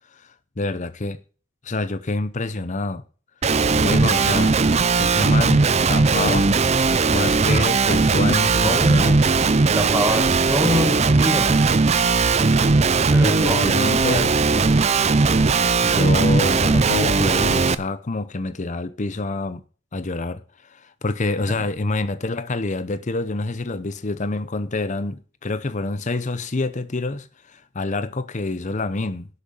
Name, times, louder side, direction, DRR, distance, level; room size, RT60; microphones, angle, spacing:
voice 1, 0.1-1.2 1.6-3.0 3.8-4.6 5.0-6.6 7.1-9.4 10.6-10.8 13.2-14.4 15.8-19.6 19.9-29.3, left 2 dB, 35° left, 0.7 m, -27 dB
Guitar, 3.4-17.7, right 4 dB, 30° right, 0.5 m, -18 dB
voice 2, 8.6-9.3 9.7-11.7 13.1-13.6 14.1-14.3 21.5-21.6, equal, 10° right, 1.5 m, -25 dB
11.5 x 8.4 x 5.5 m
head